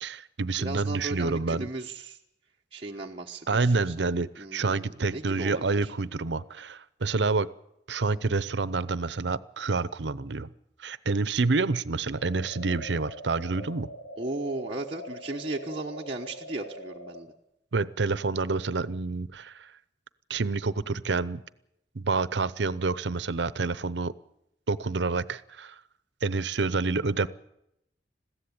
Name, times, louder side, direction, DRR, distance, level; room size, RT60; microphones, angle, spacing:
voice 1, 0.0-1.7 3.5-7.5 7.9-10.5 10.8-13.9 17.7-19.7 20.3-21.4 21.9-24.1 24.7-25.8 26.2-27.3, right 3 dB, 80° right, 17 dB, 0.7 m, -28 dB
voice 2, 0.6-2.2 2.7-3.9 4.4-5.9 14.2-17.3, right 2 dB, 30° right, -1 dB, 1.1 m, -36 dB
sound 1, 12.2-17.2, equal, 85° left, 2.3 m, -43 dB
21.5 x 15.5 x 8.7 m, 0.83 s
head